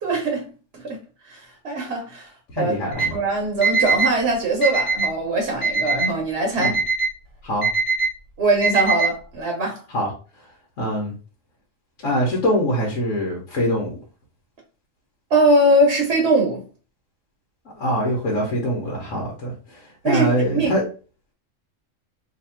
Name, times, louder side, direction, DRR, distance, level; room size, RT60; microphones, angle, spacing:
voice 1, 0.0-1.0 1.2-6.8 8.4-9.8 15.3-16.6 20.0-20.8, right 2 dB, 60° right, 1.1 m, -22 dB
voice 2, 2.5-3.1 6.6-6.8 7.4-7.7 9.9-10.1 10.8-11.1 12.0-13.9 17.8-20.8, equal, 75° left, 1.3 m, -23 dB
Alarm, 2.9-3.1 3.6-4.1 4.6-5.1 5.6-6.1 6.6-7.1 7.6-8.1 8.6-9.1, right 4 dB, 55° left, 1.4 m, -21 dB
2.9 x 2.5 x 4.3 m
omnidirectional pair, 1.3 m